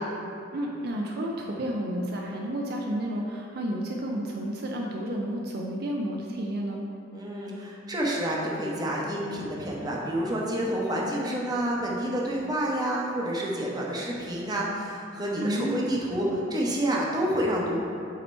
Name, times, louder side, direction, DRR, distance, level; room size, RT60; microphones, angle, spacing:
voice 1, 0.5-6.8 15.4-15.9, right 1 dB, 55° right, -1 dB, 0.5 m, -31 dB
voice 2, 7.1-17.8, right 1 dB, 20° right, -4 dB, 0.9 m, -29 dB
8.1 x 2.9 x 4.3 m, 2.7 s
head